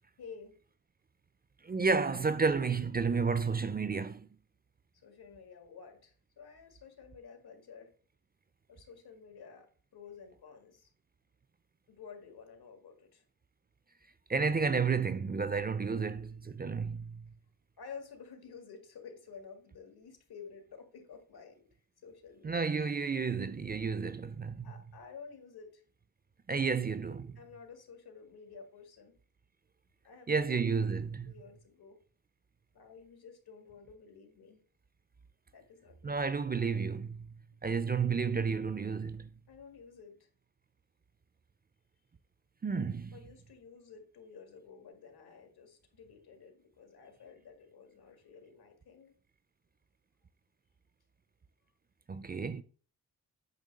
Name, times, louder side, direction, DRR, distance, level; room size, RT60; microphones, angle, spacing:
voice 1, 0.2-0.6 5.0-7.9 8.7-10.9 11.9-13.2 17.8-21.6 22.0-22.7 24.6-25.8 27.4-29.1 30.0-30.5 31.3-32.0 32.7-34.6 35.5-36.2 39.5-40.3 43.1-49.1, left 6 dB, 85° left, 2.0 m, -52 dB
voice 2, 1.6-4.3 14.3-17.2 22.4-24.7 26.5-27.3 30.3-31.3 36.0-37.3 37.6-39.3 42.6-43.1 52.1-52.6, right 5 dB, 25° right, 0.4 m, -31 dB
9.1 x 3.1 x 6.5 m
wide cardioid pair, 125°, 37 cm